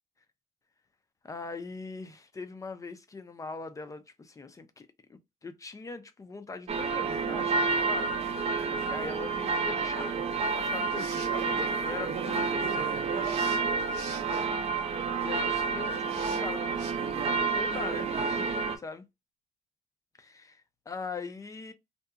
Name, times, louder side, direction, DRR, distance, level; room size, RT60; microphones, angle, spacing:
voice 1, 1.2-8.1 8.8-10.2 10.5-11.0 11.3-13.3 15.2-19.1 20.2-21.7, left 4 dB, 20° left, 0.4 m, -42 dB
sound 1, 6.7-18.8, right 4 dB, 35° right, 0.5 m, -29 dB
sound 2, 10.8-11.4 13.2-14.5 16.1-16.4 16.8-16.9, right 5 dB, 90° right, 0.9 m, -45 dB
2.7 x 2.2 x 2.3 m
cardioid pair, 110°, 17 cm